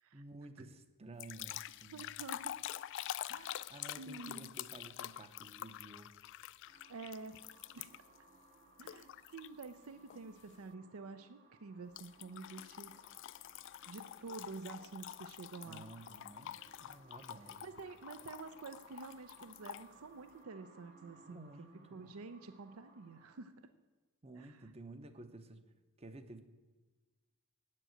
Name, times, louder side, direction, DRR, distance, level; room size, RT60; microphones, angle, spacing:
voice 1, 0.1-2.2 3.7-6.1 15.6-17.6 21.2-22.2 24.2-25.6 26.0-26.4, right 2 dB, 30° right, 10 dB, 0.7 m, -53 dB
sound 1, 1.2-8.2 8.8-9.7 10.1-10.4 12.0-19.9, left 12 dB, 55° left, 0.3 m, -47 dB
voice 2, 1.9-2.6 3.3-3.6 4.0-4.5 6.9-7.4 7.7-8.0 8.8-12.9 13.9-15.8 17.6-21.5 21.9-23.7 24.4-24.7, right 4 dB, 70° right, 11 dB, 0.5 m, -49 dB
sound 2, 6.6-23.4, right 2 dB, 45° right, 2.4 m, -64 dB
8.9 x 7.6 x 7.7 m, 1.3 s
head